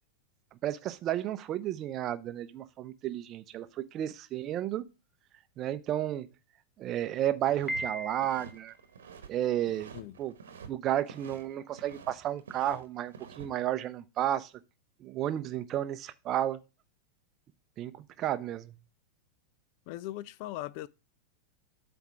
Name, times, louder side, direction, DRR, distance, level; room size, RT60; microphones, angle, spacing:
voice 1, 0.6-4.9 5.6-6.3 6.8-8.7 9.3-9.9 10.2-10.3 10.7-14.5 15.0-16.6 17.8-18.7, right 12 dB, 35° right, 0.6 m, -32 dB
sound 1, 7.4-9.3 9.6-10.7 11.0-12.1 12.4-13.5, right 6 dB, 65° right, 1.1 m, -48 dB
Piano, 7.7-8.7, right 1 dB, 5° left, 0.7 m, -37 dB
voice 2, 19.9-20.9, left 15 dB, 45° left, 0.3 m, -39 dB
8.1 x 3.4 x 6.0 m
figure-of-eight pair, 90°, 0 cm